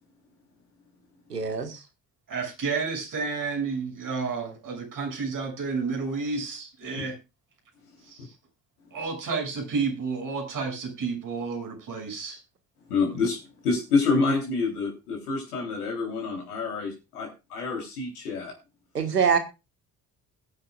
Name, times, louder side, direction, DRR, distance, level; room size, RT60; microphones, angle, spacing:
voice 1, 1.3-1.8 18.9-19.4, right 6 dB, 80° right, 7 dB, 2.0 m, -24 dB
voice 2, 2.3-7.2 8.1-8.3 8.9-12.4, right 4 dB, 45° right, 2 dB, 7.5 m, -31 dB
voice 3, 12.9-18.5, left 4 dB, 75° left, 0 dB, 3.9 m, -27 dB
21.0 x 9.9 x 2.5 m, 0.27 s
figure-of-eight pair, 55°, 46 cm